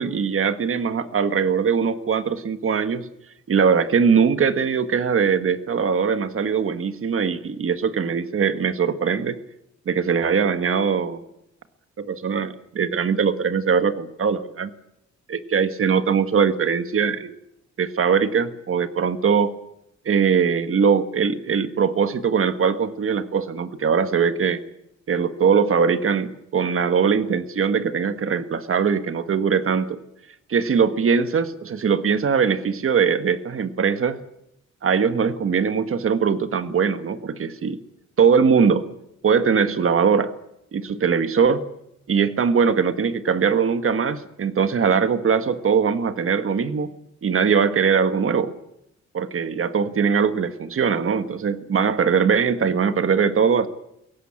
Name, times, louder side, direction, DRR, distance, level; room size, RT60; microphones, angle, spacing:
voice 1, 0.0-3.1 3.5-9.4 9.8-11.2 12.0-14.7 15.3-17.4 17.8-19.5 20.0-24.6 25.1-30.0 30.5-34.2 34.8-37.8 38.2-38.9 39.2-40.3 40.7-41.6 42.1-46.9 47.2-48.5 49.1-53.7, right 6 dB, 45° right, 10 dB, 1.5 m, -21 dB
22.5 x 17.5 x 8.8 m, 0.80 s
wide cardioid pair, 170°, 30 cm